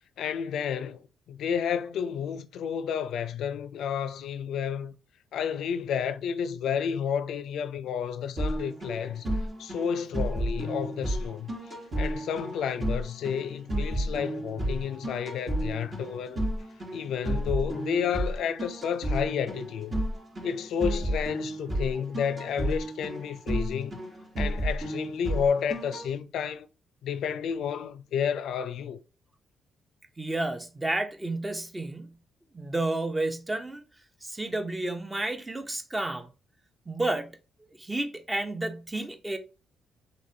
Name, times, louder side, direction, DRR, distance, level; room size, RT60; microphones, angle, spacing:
voice 1, 0.2-5.0 5.3-9.2 9.6-16.4 16.9-20.0 20.4-23.9 24.4-26.7 27.0-29.0, left 7 dB, 75° left, 0.4 m, -31 dB
sound 1, 8.4-26.0, right 1 dB, 35° right, 1.1 m, -32 dB
voice 2, 30.2-32.2 32.5-33.8 34.2-36.3 36.9-37.4 37.7-39.4, right 2 dB, 15° right, 0.6 m, -31 dB
3.1 x 2.5 x 2.7 m
cardioid pair, 90°, 0 cm